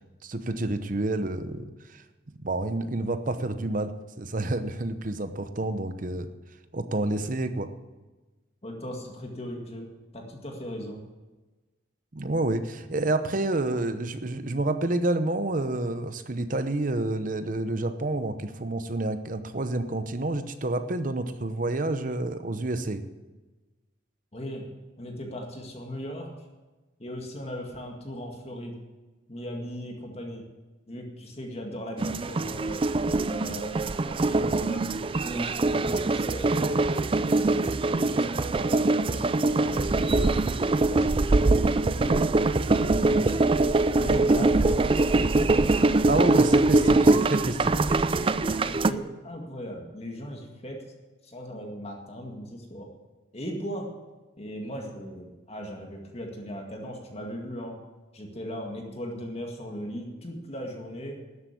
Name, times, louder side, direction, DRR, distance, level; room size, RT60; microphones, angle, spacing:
voice 1, 0.2-2.0 2.4-6.3 6.7-7.7 12.1-23.0 46.1-47.8, right 2 dB, 45° right, 10 dB, 0.8 m, -29 dB
voice 2, 8.6-11.0 24.3-24.7 25.0-26.3 27.0-28.8 29.3-30.5 30.9-32.8 33.2-34.9 35.2-36.9 37.3-40.4 40.9-42.3 42.7-43.4 43.9-44.9 46.1-46.5 46.8-46.9 48.5-50.8 51.2-52.9 53.3-53.9 54.4-57.8 58.1-61.2, equal, 30° left, 1 dB, 2.0 m, -38 dB
sound 1, 32.0-48.9, right 2 dB, 25° right, 0.4 m, -23 dB
12.5 x 8.0 x 8.5 m, 1.2 s
head